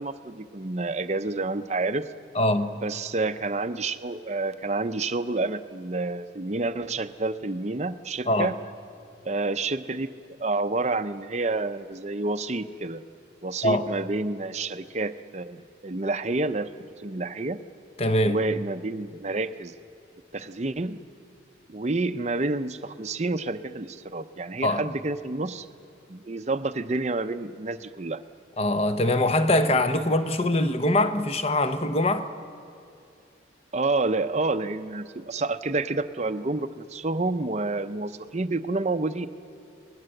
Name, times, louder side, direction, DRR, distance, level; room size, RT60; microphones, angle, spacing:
voice 1, 0.0-2.0 2.8-8.5 9.2-10.1 10.4-13.0 13.4-16.7 17.0-17.6 18.2-19.7 20.3-21.0 21.7-25.7 26.1-28.2 33.7-39.3, right 2 dB, 35° right, 0.7 m, -29 dB
voice 2, 2.3-2.8 8.3-8.6 13.6-13.8 18.0-18.4 24.6-24.8 28.6-32.3, left 1 dB, 30° left, 1.0 m, -23 dB
30.0 x 20.5 x 7.9 m
head